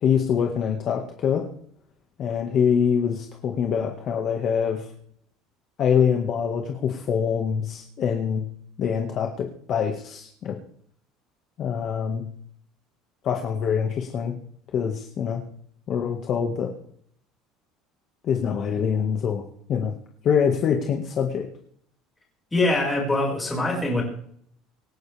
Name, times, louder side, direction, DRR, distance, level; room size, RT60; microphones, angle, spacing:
voice 1, 0.0-1.4 2.2-4.9 5.8-8.4 8.8-10.6 11.6-12.2 13.2-14.3 14.7-15.4 15.9-16.7 18.2-19.4 19.7-19.9 20.2-21.5, left 7 dB, 35° left, 2 dB, 1.7 m, -24 dB
voice 2, 22.5-24.0, left 2 dB, 10° left, -2 dB, 5.5 m, -23 dB
25.5 x 10.0 x 3.5 m, 0.64 s
cardioid pair, 170°, 0 cm